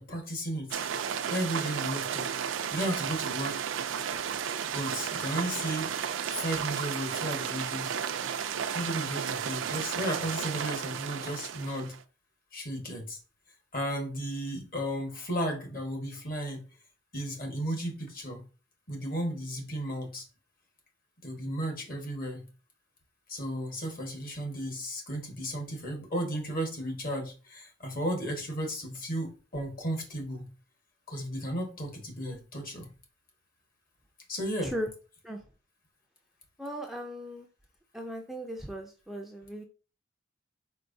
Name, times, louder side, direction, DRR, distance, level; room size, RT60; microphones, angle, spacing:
voice 1, 0.0-2.3 2.7-3.6 4.7-5.9 6.4-7.9 8.7-11.9 12.5-13.2 13.7-16.6 17.1-18.4 18.9-20.2 21.2-22.4 23.3-30.5 31.1-32.9 34.3-34.7, equal, 45° left, 1.4 m, -34 dB
sound 1, 0.7-12.0, right 8 dB, 75° right, 0.4 m, -33 dB
voice 2, 36.6-37.5 37.9-39.6, equal, ahead, 0.4 m, -37 dB
4.5 x 4.5 x 2.6 m
head